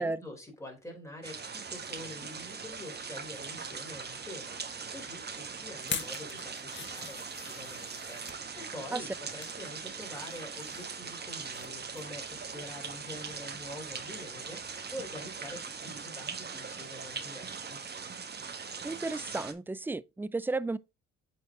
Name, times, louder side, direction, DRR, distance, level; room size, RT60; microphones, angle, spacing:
voice 1, 0.0-17.8, left 1 dB, 10° left, 3.8 m, -46 dB
sound 1, 1.2-19.5, right 5 dB, 35° right, 1.1 m, -41 dB
sound 2, 5.8-8.4 9.0-9.6 10.0-11.7 11.9-12.2 12.6-12.7, left 6 dB, 40° left, 1.1 m, -43 dB
voice 2, 18.8-20.8, right 3 dB, 5° right, 0.3 m, -33 dB
8.0 x 4.6 x 3.6 m
cardioid pair, 90°, 30 cm